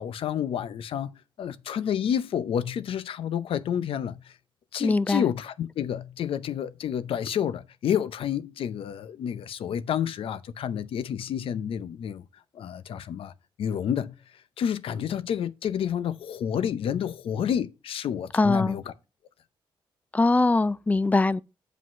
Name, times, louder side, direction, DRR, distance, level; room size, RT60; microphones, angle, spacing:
voice 1, 0.0-4.4 4.7-12.3 12.5-13.3 13.6-14.1 14.6-18.9, left 9 dB, 75° left, 0.7 m, -29 dB
voice 2, 4.8-5.2 18.3-18.8 20.1-21.4, left 3 dB, 15° left, 0.4 m, -22 dB
7.9 x 5.1 x 5.6 m
wide cardioid pair, 135°, 9 cm